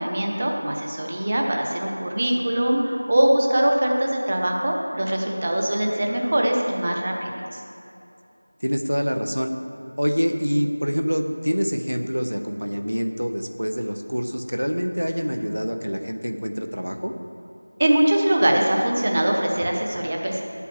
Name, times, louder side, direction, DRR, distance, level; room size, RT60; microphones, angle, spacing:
voice 1, 0.0-7.6 17.8-20.4, right 1 dB, 20° right, 1 dB, 0.7 m, -22 dB
voice 2, 8.6-9.5 10.0-17.1, equal, 85° right, 6 dB, 1.0 m, -26 dB
9.3 x 8.2 x 7.3 m, 2.6 s
figure-of-eight pair, 175°, 0 cm